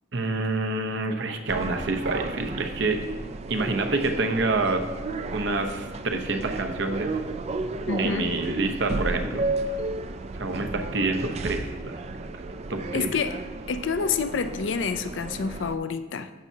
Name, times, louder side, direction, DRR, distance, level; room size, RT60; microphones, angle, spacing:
voice 1, 0.1-3.0 3.5-4.8 5.3-7.1 8.0-9.5 10.3-12.3 12.7-13.1, right 2 dB, 60° right, 6 dB, 0.8 m, -27 dB
sound 1, 1.5-15.8, right 3 dB, 30° right, 0.3 m, -33 dB
voice 2, 7.9-8.3 12.9-13.4 13.7-16.3, left 5 dB, 65° left, 10 dB, 0.5 m, -28 dB
11.5 x 7.3 x 2.8 m, 1.3 s
head